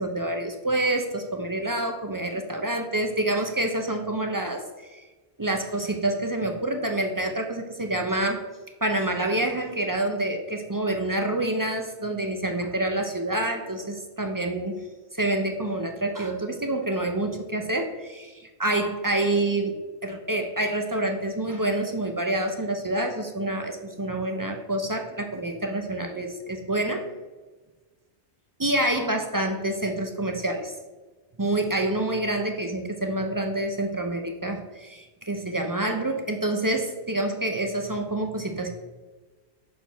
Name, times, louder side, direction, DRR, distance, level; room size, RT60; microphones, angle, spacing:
voice 1, 0.0-5.0 5.4-8.5 8.8-14.8 15.1-19.8 20.0-27.1 28.6-30.7 31.4-38.7, right 1 dB, 30° right, 4 dB, 0.3 m, -27 dB
6.3 x 6.1 x 3.5 m, 1.3 s
omnidirectional pair, 1.1 m